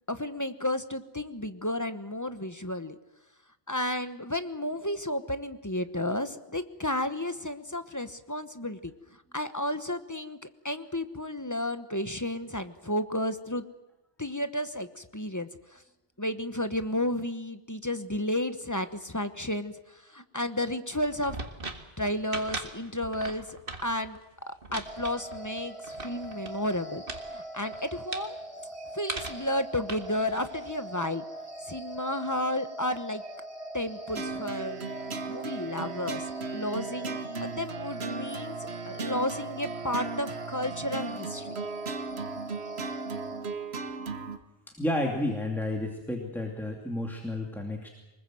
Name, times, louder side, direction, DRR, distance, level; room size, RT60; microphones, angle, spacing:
voice 1, 0.1-2.9 3.7-8.9 9.3-13.7 14.2-15.8 16.2-21.4 22.0-23.5 23.8-24.2 24.5-27.0 27.3-28.4 28.9-31.2 31.7-33.2 33.7-34.8 35.3-41.6, left 1 dB, 20° left, 10 dB, 1.1 m, -32 dB
sound 1, 20.9-26.7 27.1-27.3 27.6-28.3 29.1-29.5 29.9-30.7, right 3 dB, 60° right, 2.0 m, -39 dB
sound 2, 24.8-43.4, right 1 dB, 30° right, 4.5 m, -42 dB
sound 3, 34.1-44.4, right 4 dB, 85° right, 1.6 m, -37 dB
voice 2, 44.8-47.9, left 1 dB, ahead, 0 dB, 2.5 m, -31 dB
24.0 x 20.5 x 7.7 m, 1.0 s
omnidirectional pair, 1.1 m